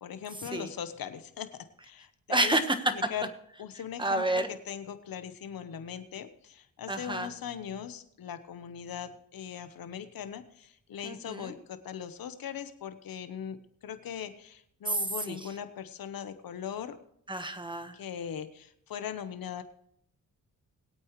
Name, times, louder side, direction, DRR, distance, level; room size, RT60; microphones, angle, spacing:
voice 1, 0.0-2.6 2.9-3.3 3.6-17.0 17.9-19.6, left 8 dB, 85° left, 10 dB, 1.1 m, -40 dB
voice 2, 2.3-2.9 4.0-4.5 6.9-7.3 11.0-11.5 14.9-15.0 15.3-15.4 17.3-18.0, right 2 dB, 15° right, 8 dB, 1.3 m, -29 dB
21.0 x 8.7 x 3.2 m, 0.71 s
cardioid pair, 85°, 34 cm